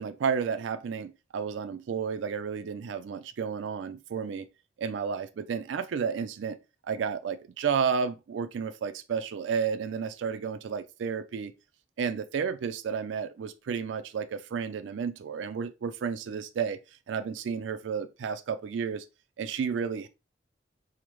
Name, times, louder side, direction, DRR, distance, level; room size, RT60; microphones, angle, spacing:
voice 1, 0.0-4.5 4.8-6.6 6.8-11.5 12.0-16.8 17.1-19.0 19.4-20.1, right 6 dB, 90° right, 0.4 m, -32 dB
5.0 x 2.0 x 3.0 m
head